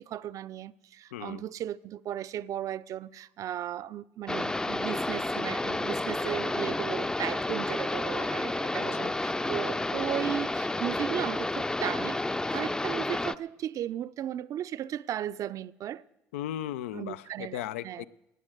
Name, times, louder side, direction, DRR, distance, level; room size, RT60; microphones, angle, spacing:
voice 1, 0.0-12.2 12.5-16.0 16.9-18.1, right 11 dB, 55° right, 0.5 m, -36 dB
voice 2, 1.1-1.4 8.9-9.1 16.3-18.1, left 12 dB, 90° left, 0.4 m, -37 dB
sound 1, 4.3-13.4, left 2 dB, 10° left, 0.5 m, -30 dB
19.0 x 6.5 x 7.9 m
hypercardioid pair, 70°, 7 cm